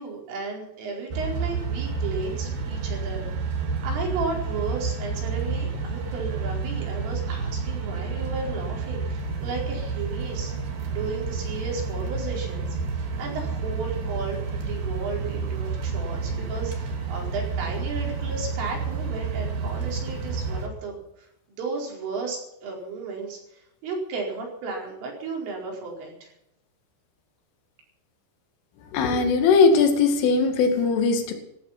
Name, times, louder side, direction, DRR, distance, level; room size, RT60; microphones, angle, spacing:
voice 1, 0.0-3.3 3.8-10.5 10.9-12.7 12.9-26.3, right 4 dB, 70° right, -1 dB, 7.2 m, -34 dB
sound 1, 1.1-20.7, right 4 dB, 50° right, 4.3 m, -30 dB
voice 2, 28.9-31.3, left 4 dB, 75° left, 4 dB, 4.8 m, -19 dB
16.0 x 15.0 x 5.8 m, 0.81 s
omnidirectional pair, 5.9 m